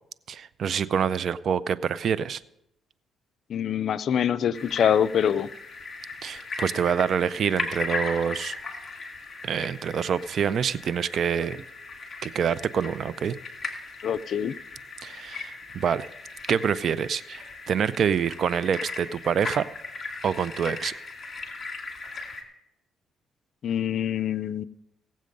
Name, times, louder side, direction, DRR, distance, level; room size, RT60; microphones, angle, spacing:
voice 1, 0.3-2.4 6.2-8.5 9.4-11.6 12.2-13.4 15.0-16.1 16.5-19.7 20.2-20.9, right 7 dB, 60° right, 17 dB, 0.5 m, -26 dB
voice 2, 3.5-5.5 14.0-14.5 23.6-24.6, left 9 dB, 65° left, 16 dB, 0.4 m, -25 dB
sound 1, 4.5-22.4, left 3 dB, 40° left, 2.4 m, -37 dB
17.5 x 7.5 x 5.3 m, 0.83 s
cardioid pair, 90°, 0 cm